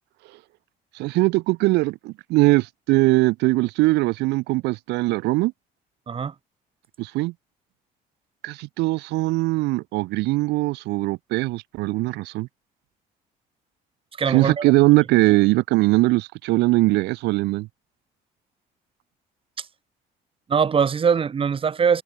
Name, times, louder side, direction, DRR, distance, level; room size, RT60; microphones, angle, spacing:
voice 1, 1.0-5.5 7.0-7.3 8.4-12.5 14.3-17.7, right 21 dB, 85° right, 0.8 m, -21 dB
voice 2, 14.2-14.6 19.6-19.7 20.5-22.0, right 6 dB, 30° right, 1.2 m, -21 dB
cardioid pair, 110°, 17 cm